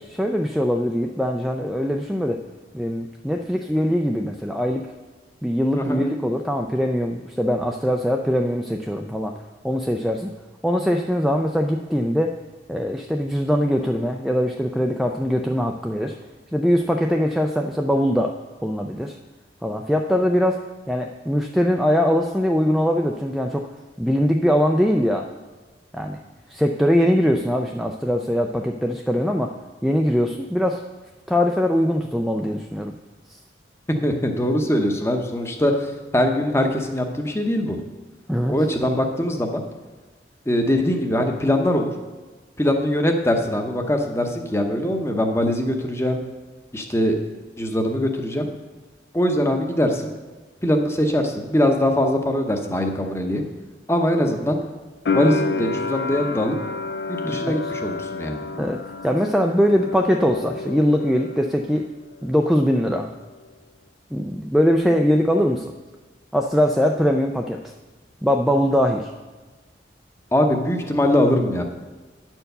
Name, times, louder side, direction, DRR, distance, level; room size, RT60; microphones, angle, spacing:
voice 1, 0.1-2.4 2.7-4.9 5.4-9.4 9.6-10.3 10.6-12.4 12.7-16.2 16.5-18.3 18.6-19.2 19.6-23.7 24.0-25.3 25.9-26.2 26.5-29.5 29.8-30.8 31.3-32.9 38.3-38.6 57.2-57.6 58.5-61.9 62.2-63.1 64.1-65.7 66.3-67.7 68.2-69.1, equal, ahead, 2 dB, 0.3 m, -22 dB
voice 2, 33.9-37.8 38.5-39.6 40.5-41.9 42.6-46.2 46.7-47.2 47.6-48.5 49.1-50.1 50.6-53.4 53.9-54.6 55.1-56.6 57.1-58.4 70.3-71.6, left 1 dB, 15° left, 4 dB, 0.8 m, -22 dB
sound 1, 55.1-61.9 62.1-63.0, left 4 dB, 65° left, 0.5 m, -30 dB
9.9 x 4.6 x 6.7 m, 1.3 s
head